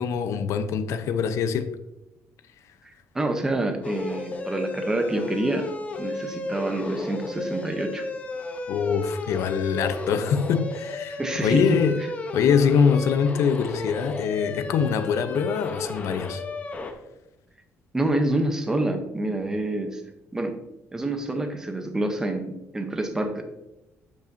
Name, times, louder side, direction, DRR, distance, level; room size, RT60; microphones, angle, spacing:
voice 1, 0.0-1.7 8.7-12.0 12.3-16.4, left 7 dB, 70° left, 0.6 m, -24 dB
voice 2, 2.8-5.7 6.0-8.0 11.2-11.8 17.9-20.0 20.3-20.5 20.9-23.4, right 1 dB, 10° right, 0.7 m, -27 dB
sound 1, 3.8-16.9, left 3 dB, 25° left, 0.7 m, -33 dB
12.0 x 5.3 x 2.6 m
cardioid pair, 170°, 5 cm